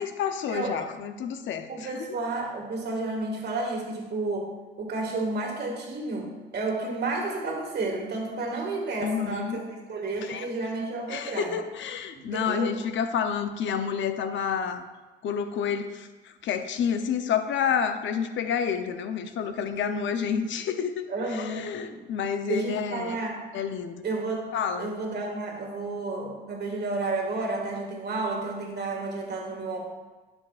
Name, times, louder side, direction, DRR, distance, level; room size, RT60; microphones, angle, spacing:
voice 1, 0.0-2.2 9.0-9.6 10.2-10.5 11.1-14.8 15.2-23.2 23.5-24.1 24.5-24.9, left 7 dB, 70° left, 9 dB, 0.6 m, -29 dB
voice 2, 1.7-4.5 4.8-11.6 12.1-12.7 19.6-20.2 21.1-21.6 21.9-22.0 22.4-23.4 24.0-24.5 24.8-29.8, right 3 dB, 55° right, 0 dB, 1.8 m, -31 dB
10.5 x 6.3 x 2.4 m, 1.3 s
cardioid pair, 90°, 20 cm